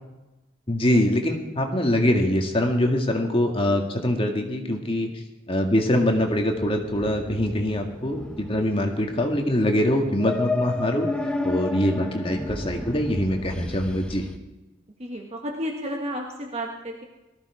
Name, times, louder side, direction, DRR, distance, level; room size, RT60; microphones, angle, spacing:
voice 1, 0.7-5.1 5.5-11.1 11.4-14.2, left 1 dB, 25° left, 3 dB, 1.8 m, -23 dB
sound 1, 6.2-14.4, left 2 dB, 5° left, 0.9 m, -33 dB
voice 2, 15.0-17.0, equal, 30° right, 1 dB, 1.4 m, -32 dB
19.0 x 14.0 x 4.9 m, 1.0 s
head